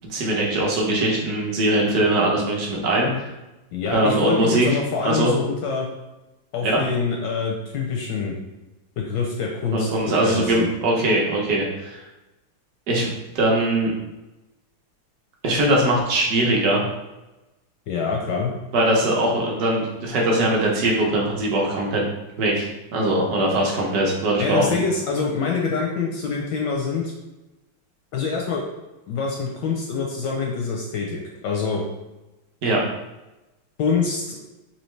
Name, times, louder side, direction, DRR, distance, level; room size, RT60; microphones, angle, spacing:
voice 1, 0.1-3.3 3.9-4.7 5.0-5.3 6.6-6.8 9.7-12.0 12.9-13.9 15.4-16.8 18.7-22.0 22.4-24.8 32.6-32.8, right 1 dB, 60° right, -2 dB, 1.1 m, -21 dB
voice 2, 3.7-5.9 6.5-8.3 9.0-9.9 10.2-10.7 17.9-18.5 24.4-27.1 28.1-28.6 29.1-31.8 33.8-34.4, left 5 dB, 75° left, -1 dB, 1.0 m, -25 dB
4.3 x 2.7 x 3.1 m, 1.0 s
omnidirectional pair, 2.3 m